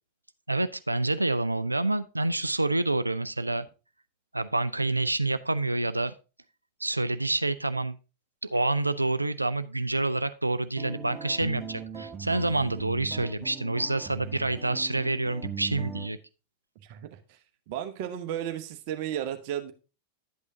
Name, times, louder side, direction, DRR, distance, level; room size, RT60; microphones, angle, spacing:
voice 1, 0.5-3.7 4.3-6.1 6.8-8.0 8.5-16.2, right 2 dB, 85° right, 13 dB, 0.4 m, -27 dB
sound 1, 10.8-16.1, right 7 dB, 20° right, 1.1 m, -40 dB
voice 2, 16.8-17.4 17.7-19.7, right 10 dB, 50° right, 7 dB, 0.9 m, -34 dB
11.5 x 8.4 x 2.7 m, 0.32 s
figure-of-eight pair, 90°, 0 cm